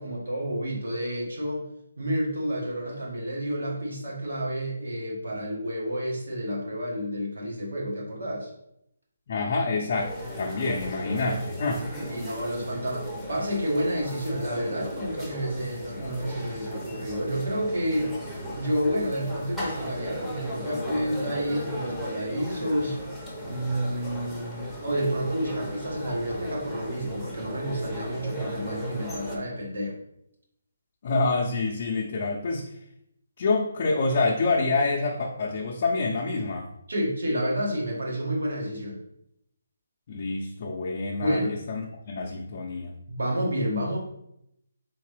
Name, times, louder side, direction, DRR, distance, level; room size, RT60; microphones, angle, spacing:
voice 1, 0.0-1.7 2.0-8.5 12.1-18.1 18.5-23.0 23.4-30.0 36.9-39.0 41.2-41.5 43.1-44.0, equal, 85° right, -3 dB, 1.7 m, -29 dB
voice 2, 9.3-11.8 31.0-32.7 33.4-36.7 40.1-42.9, left 3 dB, 40° left, -2 dB, 0.6 m, -27 dB
sound 1, 9.9-29.4, equal, 5° right, 0.7 m, -37 dB
3.8 x 3.7 x 3.3 m, 0.78 s
hypercardioid pair, 165°, 0 cm